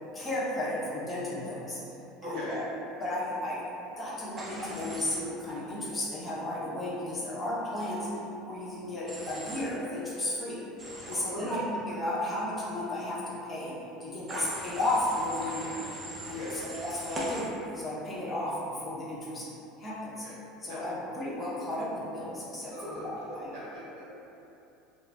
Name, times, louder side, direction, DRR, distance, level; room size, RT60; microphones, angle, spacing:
voice 1, 0.1-1.8 2.2-2.6 3.0-3.6 4.0-8.1 8.4-10.6 11.1-15.8 16.3-19.5 19.8-20.3 20.6-23.5, left 1 dB, 25° left, -8 dB, 0.8 m, -34 dB
voice 2, 2.2-2.6 11.1-11.5 16.2-16.6 20.0-20.3 20.7-20.8 22.7-24.0, right 1 dB, 70° right, -8 dB, 0.8 m, -41 dB
Human voice / Train, 4.4-5.2 9.1-9.6 10.8-11.2 14.3-17.4, right 1 dB, 25° right, 0.6 m, -40 dB
2.4 x 2.0 x 3.2 m, 2.9 s
hypercardioid pair, 85°, 0 cm